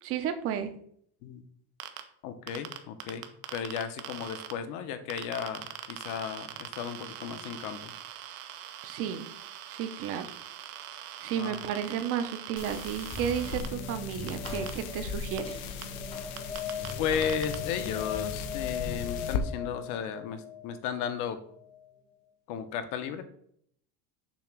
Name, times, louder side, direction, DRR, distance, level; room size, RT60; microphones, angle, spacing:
voice 1, 0.0-0.7 8.8-9.3 9.7-10.3 11.2-15.6, right 8 dB, 35° right, 9 dB, 0.6 m, -33 dB
sound 1, 1.8-2.0 2.5-4.5 5.1-13.7 14.3-14.7 15.4-15.5 15.8-15.9 16.4-16.9 17.2-17.6, right 12 dB, 90° right, 0.9 m, -42 dB
voice 2, 2.2-3.3 3.5-7.9 11.4-11.6 17.0-21.4 22.5-23.2, left 7 dB, 50° left, 9 dB, 0.8 m, -34 dB
sound 2, 12.6-19.4, left 6 dB, 75° left, 0.9 m, -38 dB
sound 3, 13.1-21.8, left 6 dB, 15° left, 0.6 m, -39 dB
7.0 x 2.9 x 5.9 m, 0.65 s
cardioid pair, 175°, 42 cm